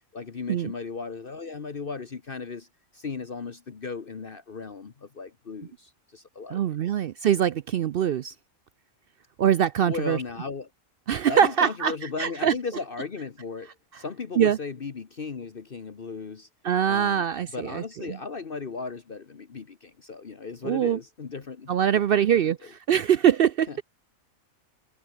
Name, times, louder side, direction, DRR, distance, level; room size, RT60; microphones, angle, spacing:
voice 1, 0.0-2.7 2.9-6.6 9.8-10.7 11.3-16.5 16.8-17.2 17.5-22.5 23.7-23.8, left 4 dB, 45° left, 1.2 m, -36 dB
voice 2, 6.5-8.3 9.4-10.2 11.1-11.9 12.2-12.5 14.4-14.6 16.6-17.8 20.6-21.0 21.7-23.7, right 9 dB, 65° right, 0.5 m, -23 dB
omnidirectional pair, 1.4 m